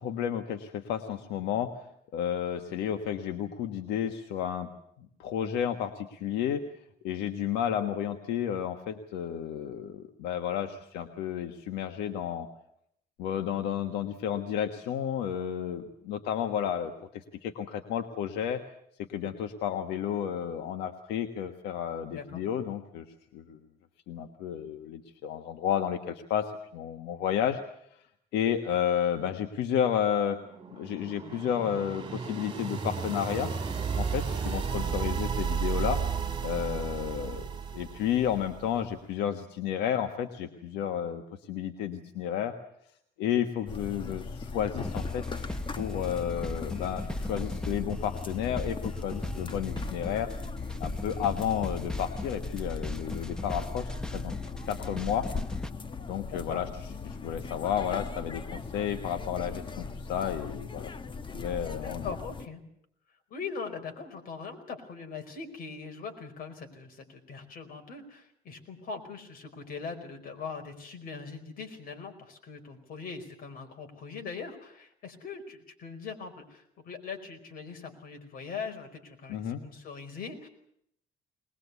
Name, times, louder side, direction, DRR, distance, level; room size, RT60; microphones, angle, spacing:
voice 1, 0.0-1.7 2.1-4.7 5.0-6.6 7.0-12.5 13.2-18.6 19.1-23.0 23.3-23.6 24.1-27.6 28.3-30.4 30.7-33.5 34.0-36.0 36.4-37.4 37.7-41.2 41.5-42.5 43.2-45.4 45.8-50.3 50.8-54.3 54.6-55.3 56.1-56.7 57.1-60.9 61.3-62.1 79.3-79.6, left 9 dB, 90° left, 6 dB, 1.5 m, -32 dB
voice 2, 22.1-22.4 56.2-56.6 61.7-62.6 63.3-80.5, left 5 dB, 60° left, 5 dB, 4.8 m, -41 dB
sound 1, 30.3-38.8, right 6 dB, 25° right, 3.9 m, -33 dB
sound 2, 43.7-62.5, left 4 dB, 30° left, 1.3 m, -39 dB
sound 3, 44.7-55.7, left 2 dB, 5° left, 1.2 m, -38 dB
21.0 x 20.5 x 8.3 m, 0.73 s
cardioid pair, 110°, 17 cm